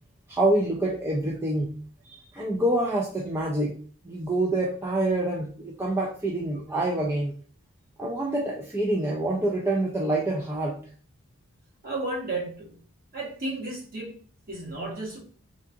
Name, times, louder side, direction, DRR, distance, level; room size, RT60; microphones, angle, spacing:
voice 1, 0.3-1.8 2.1-3.8 4.0-7.3 8.0-10.8, right 1 dB, 10° right, 0.4 m, -26 dB
voice 2, 11.8-12.8 13.1-14.1 14.5-15.2, right 2 dB, 40° right, 1.0 m, -33 dB
3.6 x 2.4 x 2.6 m
head